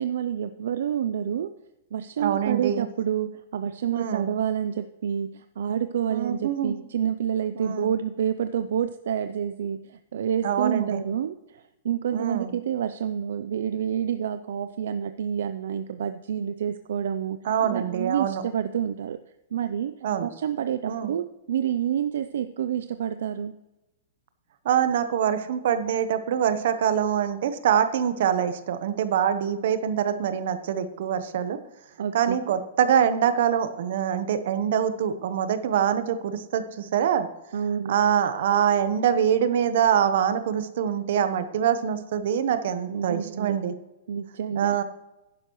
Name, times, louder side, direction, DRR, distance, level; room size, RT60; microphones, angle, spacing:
voice 1, 0.0-1.5 1.9-19.2 19.5-19.9 20.2-23.5 32.0-32.6 37.5-37.9 42.8-43.6 44.1-44.8, right 9 dB, 70° right, 10 dB, 0.5 m, -28 dB
voice 2, 2.2-2.9 3.9-4.3 6.1-6.7 7.6-7.9 10.4-11.0 12.1-12.5 17.4-18.4 20.0-20.3 20.9-21.1 24.6-31.6 32.1-37.3 37.9-43.7 44.5-44.8, right 9 dB, 55° right, 11 dB, 1.0 m, -24 dB
11.5 x 10.0 x 3.1 m, 0.97 s
hypercardioid pair, 165°, 0 cm